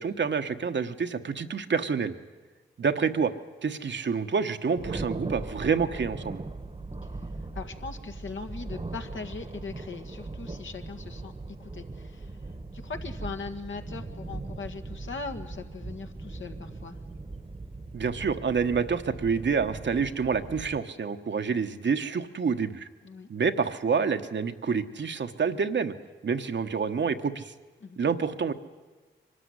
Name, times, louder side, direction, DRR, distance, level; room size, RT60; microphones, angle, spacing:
voice 1, 0.0-2.2 2.8-3.3 3.6-6.4 17.9-22.9 23.3-25.9 26.2-27.5 28.0-28.5, right 5 dB, 60° right, 8 dB, 1.2 m, -28 dB
Thunder, 4.8-20.8, right 2 dB, 30° right, 1.2 m, -39 dB
voice 2, 7.5-11.3 11.6-12.4 12.7-17.0 23.0-23.3 27.8-28.0, left 4 dB, 70° left, 5 dB, 1.8 m, -40 dB
23.5 x 13.0 x 9.7 m, 1.3 s
cardioid pair, 45°, 21 cm